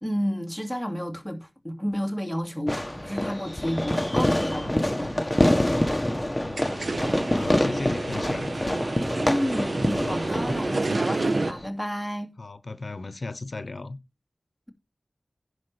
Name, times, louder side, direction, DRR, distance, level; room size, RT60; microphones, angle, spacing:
voice 1, 0.0-5.6 9.2-12.3, equal, ahead, 2.4 m, -31 dB
Fireworks, 2.7-11.7, left 1 dB, 15° left, 1.3 m, -26 dB
voice 2, 3.5-3.9 6.2-8.5 12.4-14.0, left 3 dB, 75° left, 0.8 m, -36 dB
sound 1, 6.4-11.5, right 3 dB, 70° right, 0.7 m, -30 dB
10.5 x 4.7 x 6.8 m
wide cardioid pair, 65°, 0 cm